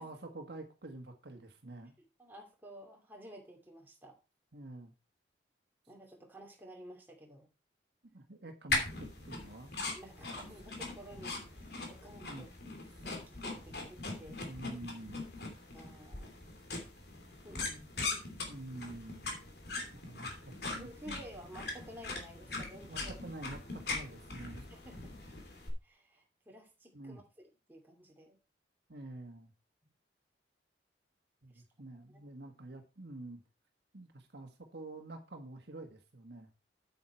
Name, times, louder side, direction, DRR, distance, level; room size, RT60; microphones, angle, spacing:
voice 1, 0.0-2.0 4.5-4.9 8.1-9.7 12.2-12.5 14.2-15.2 18.5-19.3 20.0-20.3 20.7-21.2 22.9-24.7 26.9-27.2 28.9-29.5 31.4-33.4 33.9-36.5, right 2 dB, 60° right, 4 dB, 1.6 m, -48 dB
voice 2, 2.2-4.1 5.9-7.5 9.8-12.5 13.0-14.4 15.7-16.3 17.4-18.3 20.6-23.1 24.7-25.1 25.8-27.2 27.7-28.4 31.5-31.6 31.9-32.2, equal, 10° right, -1 dB, 2.6 m, -52 dB
sound 1, 8.7-25.7, left 3 dB, 60° left, 3.0 m, -41 dB
8.9 x 8.4 x 4.4 m, 0.31 s
head